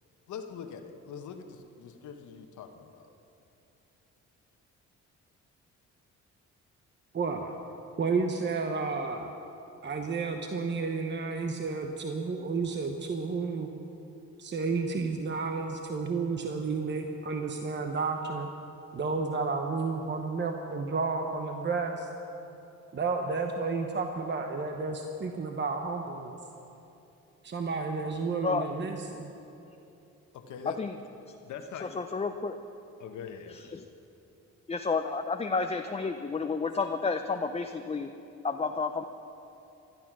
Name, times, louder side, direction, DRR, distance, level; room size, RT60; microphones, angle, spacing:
voice 1, 0.3-3.1 30.3-30.8 31.4-31.9 33.0-33.8, left 7 dB, 75° left, 6 dB, 1.2 m, -43 dB
voice 2, 7.1-7.5 8.0-9.3 9.8-13.7 14.4-18.5 18.9-22.1 22.9-26.4 27.4-29.3, right 4 dB, 35° right, 4 dB, 1.0 m, -31 dB
voice 3, 32.0-32.6 33.7-33.8 34.7-38.1 38.4-39.0, left 4 dB, 20° left, 6 dB, 0.6 m, -30 dB
16.0 x 11.5 x 6.1 m, 2.9 s
cardioid pair, 90°, 30 cm